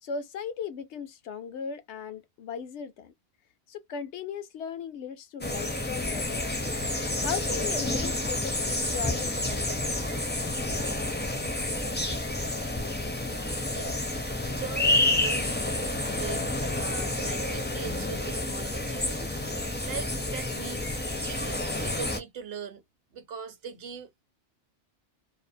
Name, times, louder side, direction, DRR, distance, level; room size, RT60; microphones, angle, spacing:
voice 1, 0.0-3.1 3.7-6.6 7.2-9.7, left 7 dB, 75° left, 0.9 m, -37 dB
sound 1, 5.4-22.2, left 2 dB, 15° left, 0.4 m, -29 dB
voice 2, 13.7-14.1 14.4-15.7 16.2-19.4 19.8-22.8 23.1-24.2, right 7 dB, 60° right, 0.9 m, -41 dB
2.6 x 2.0 x 2.5 m
omnidirectional pair, 1.2 m